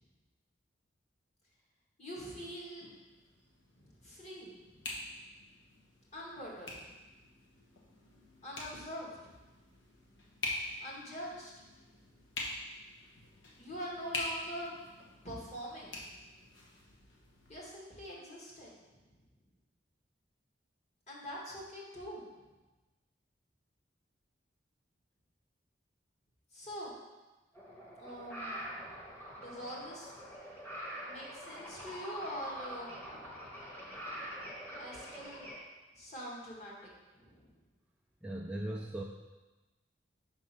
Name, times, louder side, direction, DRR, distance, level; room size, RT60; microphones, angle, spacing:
voice 1, 2.0-2.9 3.7-4.8 6.1-6.8 8.4-9.2 10.8-11.5 13.6-14.7 15.2-16.0 17.5-18.8 21.1-22.2 26.5-26.9 28.0-29.0 29.4-30.2 31.1-33.6 34.8-35.4 35.9-36.7 37.1-37.5, equal, 40° left, -5 dB, 1.7 m, -44 dB
sound 1, 2.4-17.5, left 2 dB, 80° left, 1.1 m, -45 dB
sound 2, 27.5-35.6, equal, 10° left, 1.1 m, -45 dB
voice 2, 38.2-39.0, right 1 dB, 5° right, -1 dB, 0.3 m, -38 dB
6.0 x 3.6 x 5.6 m, 1.2 s
head